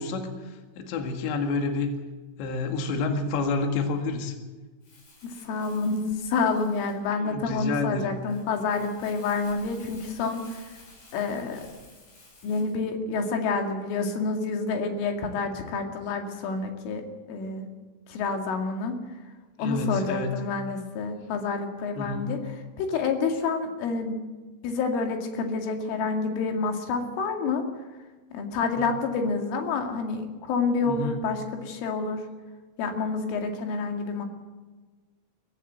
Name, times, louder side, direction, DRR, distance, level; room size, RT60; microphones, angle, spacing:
voice 1, 0.0-1.9 2.4-4.4 7.2-8.1 19.6-20.3 22.0-22.3 28.8-28.9 30.8-31.2, left 3 dB, 70° left, 5 dB, 4.1 m, -29 dB
Crumpling crinkling, 4.8-12.8, left 2 dB, 50° left, 7.4 m, -53 dB
voice 2, 5.2-10.7 11.1-11.6 12.4-17.0 17.3-17.7 18.1-19.0 19.6-24.2 24.6-27.6 28.3-32.2 32.8-34.3, left 4 dB, 90° left, 4 dB, 4.8 m, -28 dB
23.0 x 14.5 x 8.0 m, 1.3 s
omnidirectional pair, 5.5 m